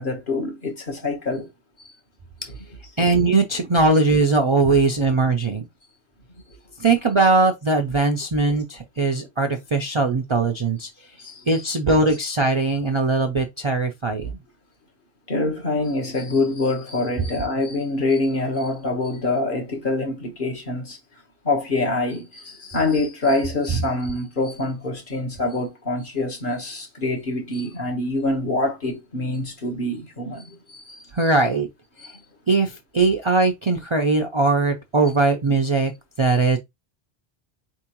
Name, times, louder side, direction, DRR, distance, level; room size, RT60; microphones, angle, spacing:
voice 1, 0.0-1.5 11.2-11.6 15.3-21.0 21.4-31.0 32.0-32.1, left 2 dB, 50° left, 1.4 m, -25 dB
voice 2, 3.0-5.7 6.8-10.9 11.5-14.4 31.1-31.7 32.5-35.9 36.2-36.6, right 3 dB, 40° right, 0.4 m, -20 dB
4.5 x 3.6 x 2.9 m
omnidirectional pair, 1.2 m